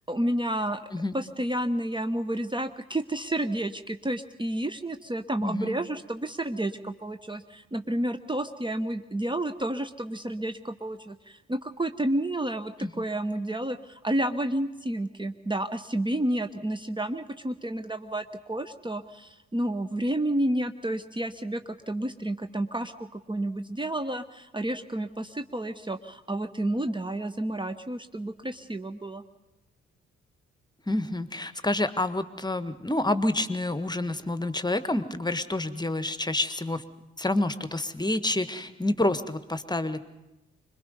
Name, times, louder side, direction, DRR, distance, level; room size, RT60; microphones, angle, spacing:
voice 1, 0.1-0.8 1.1-29.2, right 1 dB, 15° right, 9 dB, 1.1 m, -30 dB
voice 2, 5.4-5.8 12.8-12.9 30.9-36.8 37.2-40.0, left 1 dB, 10° left, 11 dB, 1.5 m, -28 dB
26.0 x 21.5 x 5.4 m, 1.0 s
figure-of-eight pair, 40°, 33 cm